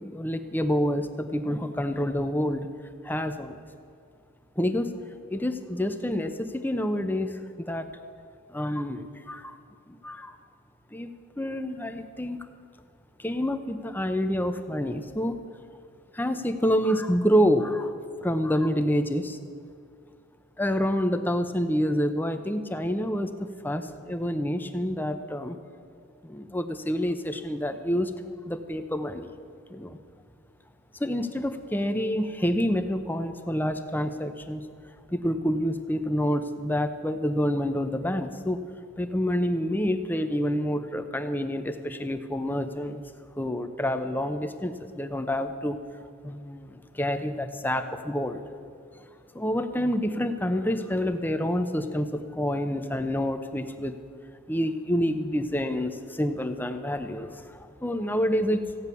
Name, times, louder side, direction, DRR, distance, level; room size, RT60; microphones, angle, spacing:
voice 1, 0.0-2.7 3.0-3.6 4.6-4.9 5.3-7.9 8.5-9.6 9.9-10.3 10.9-11.1 11.4-12.4 13.2-15.4 16.1-17.9 18.2-19.4 20.6-25.6 26.2-28.1 28.4-29.3 29.7-30.0 31.0-34.6 35.1-38.6 39.0-43.0 43.4-45.8 46.2-48.4 49.0-49.1 49.3-54.0 54.5-58.6, equal, 10° left, 8 dB, 0.7 m, -28 dB
15.0 x 9.5 x 6.9 m, 2.4 s
head